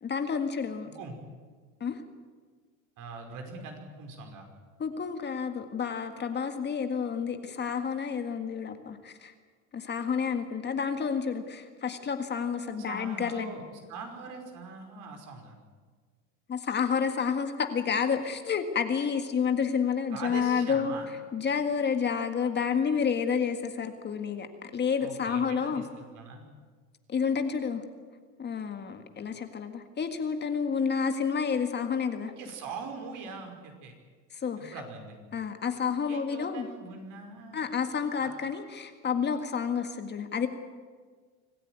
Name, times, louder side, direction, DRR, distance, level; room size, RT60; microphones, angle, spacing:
voice 1, 0.0-0.9 1.8-2.0 4.8-9.3 9.7-13.5 16.5-20.9 21.3-25.8 27.1-27.8 28.4-32.3 34.3-34.7 35.3-36.7 37.5-40.5, left 6 dB, 30° left, 6 dB, 1.8 m, -30 dB
voice 2, 3.0-4.5 12.9-13.6 13.9-15.6 20.1-21.1 25.0-26.4 32.4-33.9 34.6-35.2 36.1-37.8 38.2-38.3, right 4 dB, 60° right, 3 dB, 5.4 m, -42 dB
25.5 x 14.5 x 9.5 m, 1.5 s
cardioid pair, 130°, 36 cm